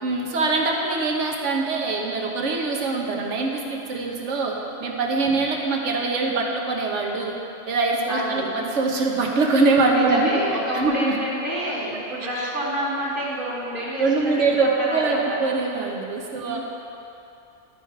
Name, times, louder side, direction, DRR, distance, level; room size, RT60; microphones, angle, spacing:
voice 1, 0.0-7.3 7.7-10.4 10.7-11.2 12.4-12.5 14.0-16.6, right 3 dB, 75° right, 0 dB, 1.3 m, -23 dB
voice 2, 8.1-8.5 9.9-15.4 16.4-16.6, equal, 45° right, -6 dB, 2.0 m, -28 dB
12.0 x 4.7 x 4.6 m, 2.8 s
omnidirectional pair, 1.3 m